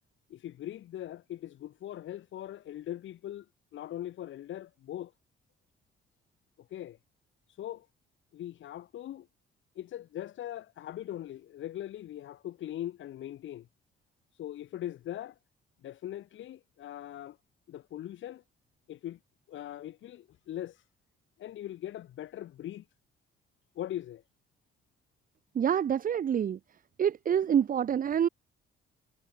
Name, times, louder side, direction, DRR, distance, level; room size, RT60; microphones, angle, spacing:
voice 1, 0.3-3.5 3.7-5.1 6.6-7.0 7.5-7.9 8.3-9.3 9.8-13.7 14.3-15.4 15.8-17.4 17.7-18.4 18.9-19.2 19.5-20.8 21.4-22.9 23.8-24.2, left 12 dB, 75° left, 2.4 m, -40 dB
voice 2, 25.5-26.6 27.0-28.3, right 8 dB, 45° right, 0.7 m, -26 dB
cardioid pair, 90°, 20 cm